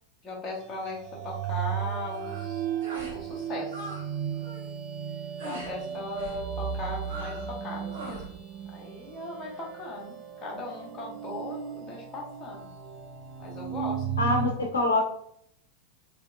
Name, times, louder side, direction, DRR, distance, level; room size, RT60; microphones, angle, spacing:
voice 1, 0.2-2.7 3.1-4.0 5.4-8.2 8.7-12.7 13.4-14.1, left 2 dB, 25° left, -2 dB, 1.1 m, -38 dB
sound 1, 0.6-14.5, right 8 dB, 30° right, 0.5 m, -35 dB
sound 2, 2.1-2.5 2.8-3.2 3.5-4.1 4.3-4.7 5.4-5.7 6.2-6.4 7.0-7.5 7.9-8.3, right 1 dB, 60° right, 1.2 m, -41 dB
voice 2, 14.2-15.0, left 2 dB, 70° left, 0 dB, 0.6 m, -24 dB
3.4 x 2.9 x 2.5 m, 0.72 s
figure-of-eight pair, 90°, 0 cm